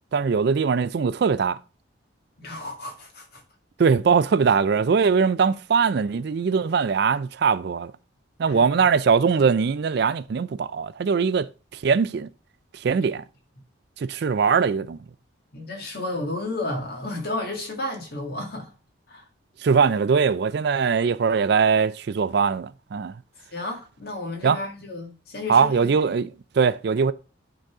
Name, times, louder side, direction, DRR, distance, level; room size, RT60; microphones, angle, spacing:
voice 1, 0.1-1.6 3.8-7.9 8.4-11.5 11.8-12.3 12.8-13.2 14.0-15.0 19.6-23.1 24.4-24.6 25.5-27.1, right 5 dB, 55° right, 0.3 m, -21 dB
voice 2, 2.4-3.4 8.4-8.7 15.5-18.7 19.1-19.2 23.5-25.9, left 2 dB, 50° left, 1.8 m, -32 dB
8.9 x 4.0 x 4.8 m
head